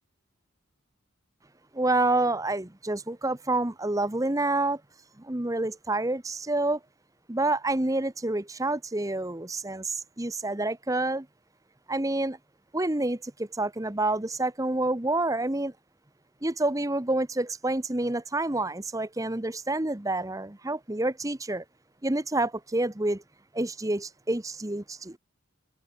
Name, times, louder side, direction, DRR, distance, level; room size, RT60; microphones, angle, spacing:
voice 1, 1.7-4.8 5.2-6.8 7.3-11.3 11.9-12.4 12.7-15.7 16.4-21.6 22.0-23.2 23.5-25.2, right 2 dB, 15° right, 0.9 m, -28 dB
head